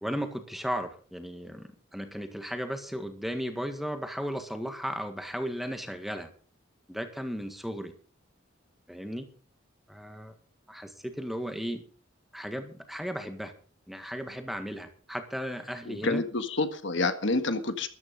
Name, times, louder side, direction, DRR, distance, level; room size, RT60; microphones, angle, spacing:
voice 1, 0.0-6.3 6.9-7.9 8.9-9.3 9.9-10.3 10.7-11.8 12.3-13.5 13.9-16.2, equal, ahead, 6 dB, 1.7 m, -35 dB
voice 2, 15.9-17.9, left 3 dB, 60° left, 9 dB, 1.7 m, -28 dB
14.0 x 12.5 x 5.3 m, 0.43 s
head